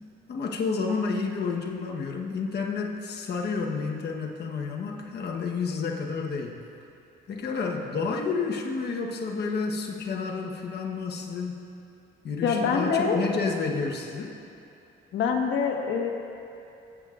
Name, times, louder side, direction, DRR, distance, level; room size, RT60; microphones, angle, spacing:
voice 1, 0.3-6.6 7.3-11.7 12.2-14.4, left 4 dB, 55° left, 0 dB, 1.2 m, -30 dB
voice 2, 12.4-13.2 15.1-16.1, left 5 dB, 75° left, 1 dB, 1.4 m, -25 dB
20.5 x 8.3 x 2.5 m, 2.8 s
cardioid pair, 90°, 20 cm